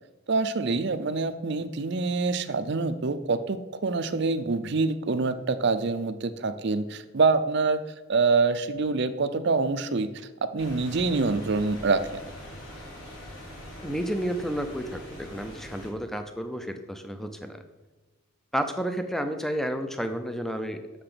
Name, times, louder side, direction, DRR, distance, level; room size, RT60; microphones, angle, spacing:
voice 1, 0.3-7.8 8.1-12.2, right 4 dB, 50° right, 11 dB, 0.5 m, -26 dB
sound 1, 10.6-15.9, left 1 dB, 70° left, 3.0 m, -43 dB
voice 2, 13.8-17.6 18.5-20.8, equal, ahead, 7 dB, 0.5 m, -31 dB
6.9 x 5.8 x 6.7 m, 1.2 s
head